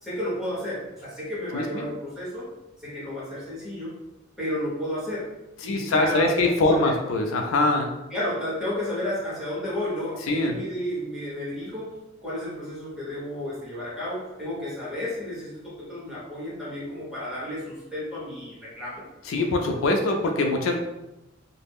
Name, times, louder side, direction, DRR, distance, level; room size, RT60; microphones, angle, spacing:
voice 1, 0.0-2.5 2.8-3.9 4.4-5.3 5.6-6.9 8.1-11.9 12.2-19.0 19.4-19.8, left 1 dB, ahead, -9 dB, 1.1 m, -32 dB
voice 2, 1.5-1.9 5.6-7.9 10.3-10.6 19.3-20.8, left 2 dB, 85° left, 3 dB, 0.4 m, -23 dB
2.3 x 2.0 x 3.4 m, 0.98 s
head